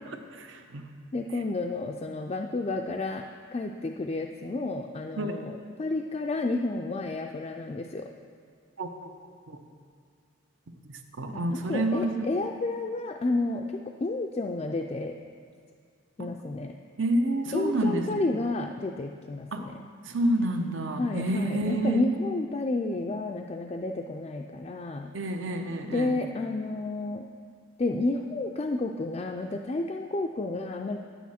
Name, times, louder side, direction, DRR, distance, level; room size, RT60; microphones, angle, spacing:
voice 1, 0.1-0.8 5.2-5.4 8.8-8.9 9.5-9.6 10.9-12.3 16.2-16.3 17.0-18.2 19.5-19.6 20.1-22.0 25.1-26.2, right 1 dB, 70° right, 5 dB, 0.8 m, -29 dB
voice 2, 1.1-3.2 3.5-8.1 11.3-15.1 16.2-16.7 17.5-19.8 21.0-25.1 25.9-27.2 27.8-31.0, left 2 dB, 30° left, 2 dB, 0.3 m, -31 dB
10.5 x 8.3 x 4.2 m, 2.1 s
head